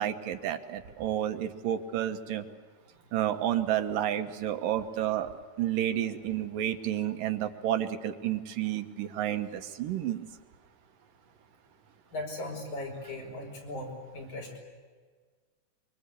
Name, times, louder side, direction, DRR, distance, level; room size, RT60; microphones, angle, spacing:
voice 1, 0.0-2.4 3.1-5.3 5.6-10.3, right 11 dB, 80° right, 7 dB, 2.8 m, -30 dB
voice 2, 12.1-14.6, left 2 dB, 60° left, 1 dB, 6.4 m, -38 dB
24.5 x 24.0 x 8.4 m, 1.5 s
omnidirectional pair, 3.9 m